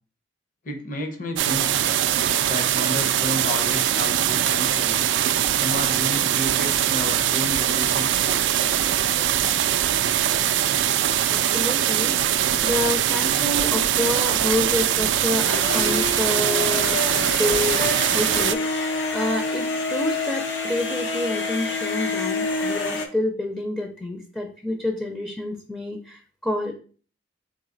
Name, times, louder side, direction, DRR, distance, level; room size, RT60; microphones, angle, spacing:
voice 1, 0.6-1.8 2.5-5.0 5.5-8.4, equal, 45° left, 3 dB, 0.7 m, -31 dB
sound 1, 1.4-18.5, right 11 dB, 80° right, 0.3 m, -22 dB
voice 2, 11.3-12.1 12.6-26.7, left 1 dB, 5° left, 2 dB, 0.5 m, -28 dB
sound 2, 15.3-23.1, left 3 dB, 90° left, 0.7 m, -27 dB
4.0 x 2.8 x 3.8 m, 0.42 s
head